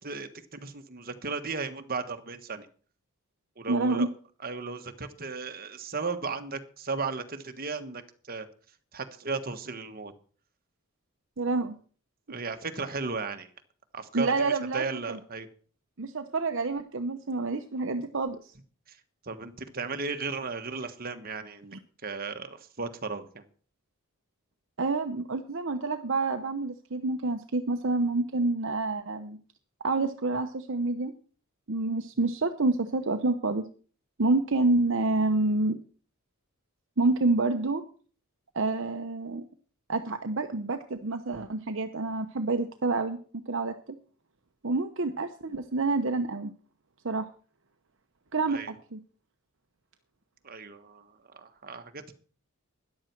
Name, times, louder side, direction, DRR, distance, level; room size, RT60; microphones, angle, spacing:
voice 1, 0.0-2.7 3.6-4.1 4.4-8.5 8.9-10.1 12.3-13.5 13.9-15.5 18.9-19.0 19.2-21.8 22.0-23.4 48.5-48.7 50.4-52.1, right 4 dB, 45° right, 8 dB, 1.4 m, -35 dB
voice 2, 3.7-4.1 11.4-11.7 14.1-15.2 16.0-18.5 21.7-21.8 24.8-29.4 29.8-31.1 31.7-33.7 34.2-35.8 37.0-37.8 38.5-39.4 39.9-43.2 43.5-43.7 44.6-46.5 47.0-47.2 48.3-49.0, right 3 dB, 60° right, 7 dB, 0.9 m, -28 dB
13.5 x 10.5 x 4.6 m, 0.41 s
head